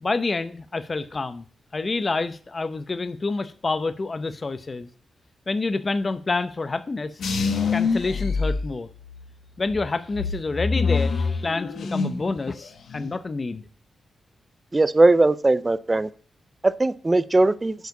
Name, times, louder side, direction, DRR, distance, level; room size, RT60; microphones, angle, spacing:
voice 1, 0.0-1.4 1.7-4.9 5.5-7.2 7.7-8.9 9.6-13.6, left 3 dB, 30° left, 0.7 m, -28 dB
sound 1, 7.2-9.2 9.7-12.3 12.6-13.2, left 4 dB, 80° left, 1.2 m, -26 dB
voice 2, 14.7-16.1 16.6-17.7, right 2 dB, 20° right, 0.5 m, -19 dB
7.8 x 4.9 x 7.0 m
wide cardioid pair, 140°, 0 cm